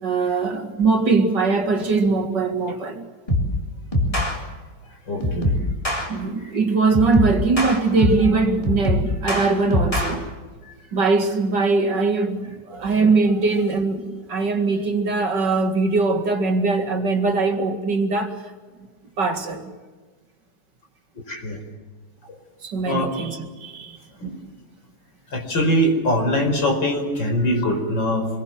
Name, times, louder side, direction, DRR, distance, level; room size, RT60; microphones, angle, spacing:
voice 1, 0.0-3.1 5.2-5.6 6.1-10.3 10.9-14.0 14.3-18.3 19.2-19.7 22.6-24.0, right 3 dB, 55° right, 2.8 m, -21 dB
sound 1, 3.3-3.6 3.9-4.4 5.2-6.1 6.9-8.3 8.6-10.1, left 1 dB, 15° left, 4.1 m, -22 dB
voice 2, 5.1-5.5 10.6-10.7 21.3-21.6 22.9-23.1 24.2-24.4 25.3-28.3, equal, 60° left, 5.6 m, -22 dB
27.0 x 22.5 x 7.6 m
omnidirectional pair, 2.2 m